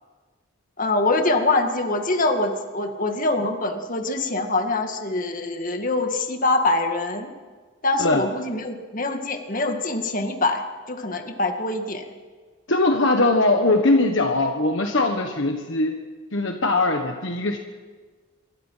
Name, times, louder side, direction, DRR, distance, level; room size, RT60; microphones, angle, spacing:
voice 1, 0.8-7.3 7.8-12.1, left 2 dB, 40° left, 5 dB, 2.1 m, -24 dB
voice 2, 12.7-15.9 16.3-17.6, left 2 dB, 60° left, 4 dB, 1.4 m, -21 dB
26.0 x 23.0 x 5.8 m, 1.4 s
head